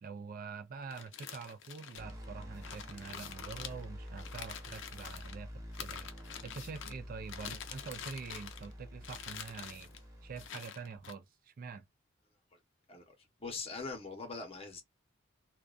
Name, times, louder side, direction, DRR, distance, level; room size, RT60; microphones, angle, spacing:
voice 1, 0.0-9.9 10.2-11.9, right 5 dB, 45° right, 0.3 m, -46 dB
sound 1, 0.8-5.3 5.7-7.0 7.3-8.7 9.0-10.0 10.4-11.1, left 8 dB, 60° left, 0.5 m, -46 dB
sound 2, 2.0-10.5, equal, 15° right, 0.7 m, -48 dB
voice 2, 13.4-14.8, left 4 dB, 30° left, 0.9 m, -42 dB
2.4 x 2.2 x 2.4 m
head